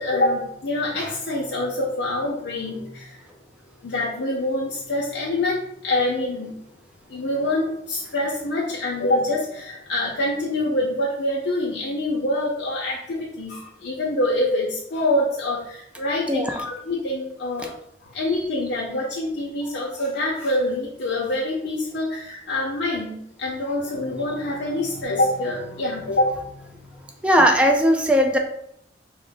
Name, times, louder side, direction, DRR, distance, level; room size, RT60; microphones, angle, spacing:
voice 1, 0.0-3.2 3.8-6.6 7.1-17.7 18.0-27.0, left 1 dB, 80° left, -4 dB, 0.7 m, -25 dB
voice 2, 27.2-28.4, equal, 5° right, 3 dB, 0.4 m, -18 dB
4.5 x 2.1 x 3.7 m, 0.73 s
head